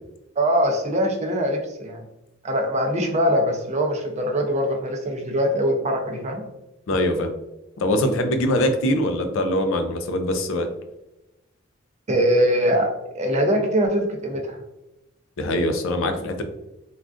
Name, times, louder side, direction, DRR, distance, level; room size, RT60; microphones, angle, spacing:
voice 1, 0.4-2.0 2.4-6.4 12.1-12.9 13.1-14.6, equal, 35° right, 3 dB, 0.5 m, -22 dB
voice 2, 6.9-7.3 7.8-10.7 15.4-16.4, left 1 dB, 65° left, 6 dB, 0.4 m, -22 dB
3.5 x 2.3 x 2.4 m, 0.94 s
head